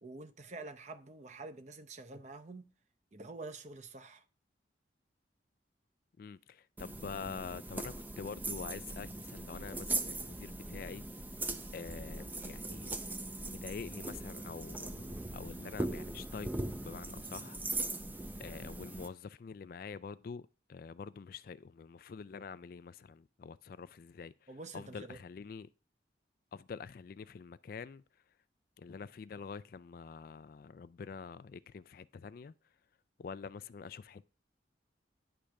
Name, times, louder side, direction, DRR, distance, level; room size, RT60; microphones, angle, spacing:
voice 1, 0.0-2.7 3.1-4.2 24.5-25.2, right 3 dB, 40° right, 0.7 m, -47 dB
voice 2, 6.2-11.1 11.7-12.9 13.4-17.8 18.4-25.7 26.5-28.0 28.8-32.5 33.2-34.3, left 5 dB, 50° left, 0.3 m, -46 dB
sound 1, 6.8-19.1, right 2 dB, 10° right, 0.5 m, -40 dB
10.0 x 3.4 x 6.3 m
head